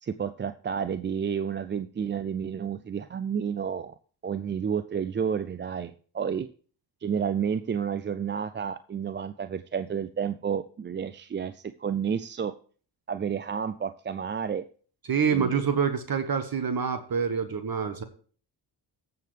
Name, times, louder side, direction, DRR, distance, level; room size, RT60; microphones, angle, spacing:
voice 1, 0.0-3.9 4.2-6.5 7.0-12.5 13.1-14.6 15.3-15.8, right 7 dB, 25° right, 13 dB, 0.4 m, -31 dB
voice 2, 15.1-18.0, right 6 dB, 50° right, 9 dB, 1.2 m, -26 dB
14.5 x 6.8 x 3.3 m, 0.42 s
supercardioid pair, 50°, 47 cm